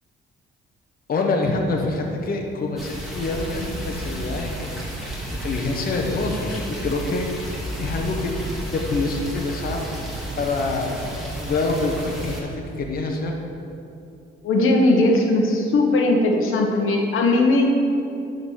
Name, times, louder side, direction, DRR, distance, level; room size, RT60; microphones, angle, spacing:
voice 1, 1.1-5.0 5.4-8.3 8.7-9.9 10.4-12.5 12.8-13.3, left 3 dB, 45° left, 1 dB, 1.0 m, -26 dB
sound 1, 2.8-12.4, right 1 dB, ahead, 1.9 m, -32 dB
voice 2, 14.4-17.7, left 2 dB, 75° left, 1 dB, 1.1 m, -18 dB
11.0 x 3.9 x 6.4 m, 2.6 s
cardioid pair, 125°, 21 cm